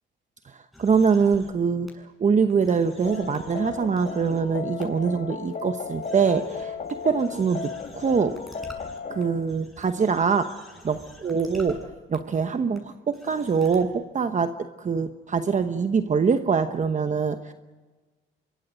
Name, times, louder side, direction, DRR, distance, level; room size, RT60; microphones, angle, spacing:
sound 1, 0.7-1.5 1.9-2.0 2.5-4.4 4.8-4.9 5.5-5.6 6.0-11.8 12.1-12.2 12.7-12.8 13.1-13.9, equal, ahead, 7.5 m, -48 dB
voice 1, 0.8-8.4 9.1-10.5 10.8-17.5, right 5 dB, 40° right, 8 dB, 1.1 m, -24 dB
sound 2, 3.0-9.7, left 5 dB, 40° left, 2.2 m, -35 dB
24.0 x 23.0 x 6.4 m, 1.3 s
cardioid pair, 90°, 20 cm